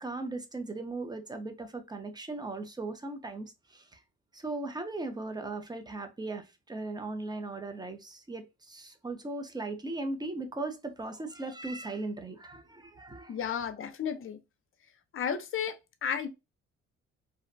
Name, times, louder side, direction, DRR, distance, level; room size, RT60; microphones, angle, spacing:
voice 1, 0.0-4.0 4.3-13.4, right 2 dB, 15° right, 0.4 m, -38 dB
voice 2, 13.3-14.4 15.1-15.8 16.0-16.3, left 7 dB, 45° left, 0.5 m, -32 dB
2.5 x 2.1 x 2.5 m
cardioid pair, 90°, 30 cm